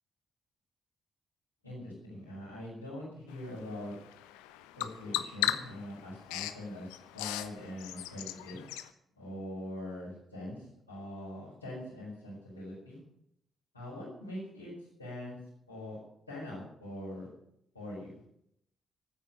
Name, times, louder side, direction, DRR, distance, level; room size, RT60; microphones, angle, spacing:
voice 1, 1.6-3.9 4.8-8.6 9.1-13.0 13.7-14.7 15.0-15.4 15.7-16.0 16.3-17.3 17.7-18.1, left 1 dB, 85° left, -11 dB, 5.6 m, -43 dB
Bird vocalization bird call bird song, 3.3-8.9, left 14 dB, 70° left, 0.7 m, -38 dB
13.5 x 9.6 x 9.0 m, 0.74 s
figure-of-eight pair, 40°, 0 cm